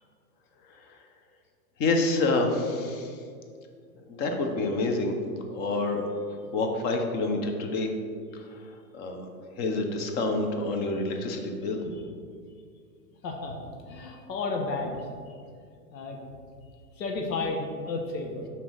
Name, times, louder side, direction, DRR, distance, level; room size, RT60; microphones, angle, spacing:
voice 1, 1.8-3.2 4.1-5.1 5.5-6.1 6.5-7.9 8.3-8.6 8.9-9.3 9.6-11.8, left 2 dB, 20° left, 4 dB, 0.5 m, -27 dB
voice 2, 13.2-15.0 15.9-16.2 17.0-18.5, left 3 dB, 85° left, 2 dB, 1.1 m, -32 dB
5.9 x 4.1 x 6.2 m, 2.2 s
hypercardioid pair, 140°, 48 cm